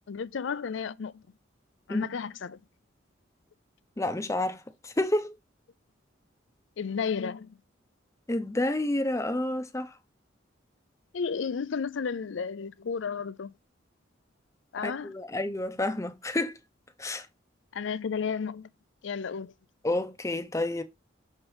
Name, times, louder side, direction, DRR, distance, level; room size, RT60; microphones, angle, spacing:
voice 1, 0.1-1.2 1.9-2.6 6.8-7.6 11.1-13.5 14.7-15.1 17.7-18.7 19.0-19.5, left 6 dB, 70° left, 0.4 m, -33 dB
voice 2, 4.0-5.4 8.3-9.9 14.8-16.6 17.0-17.3 19.8-20.8, left 1 dB, 15° left, 0.7 m, -29 dB
6.5 x 3.2 x 4.8 m
head